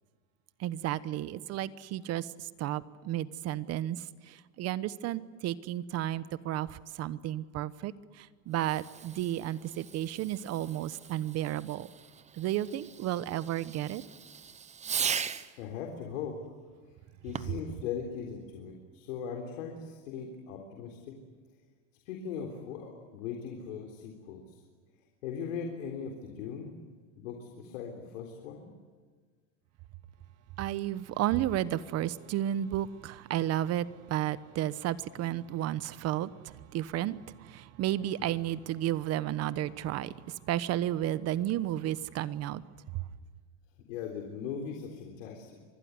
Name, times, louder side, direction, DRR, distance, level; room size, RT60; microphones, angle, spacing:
voice 1, 0.6-2.3 2.6-7.9 8.2-11.9 12.4-14.0 30.6-36.3 36.7-37.2 37.4-40.1 40.5-42.6, right 13 dB, 40° right, 16 dB, 1.1 m, -32 dB
Fireworks, 8.5-15.6 17.2-17.7, right 7 dB, 20° right, 0.9 m, -39 dB
voice 2, 15.6-16.4 17.2-21.1 22.1-24.6 25.2-26.8 27.2-28.7 43.9-45.6, left 7 dB, 85° left, 2 dB, 3.9 m, -39 dB
26.0 x 21.0 x 9.7 m, 1.5 s
supercardioid pair, 135°, 38 cm